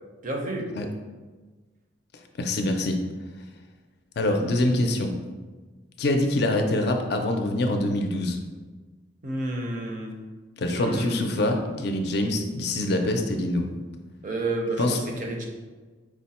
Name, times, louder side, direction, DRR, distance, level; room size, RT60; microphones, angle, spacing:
voice 1, 0.2-0.7 9.2-10.2 10.7-11.3 11.7-11.9 14.2-15.5, right 2 dB, 40° right, 1 dB, 0.6 m, -30 dB
voice 2, 2.4-3.0 4.2-5.1 6.0-8.4 10.6-13.7 14.8-15.0, left 1 dB, 55° left, 4 dB, 0.4 m, -25 dB
4.8 x 2.1 x 4.1 m, 1.3 s
head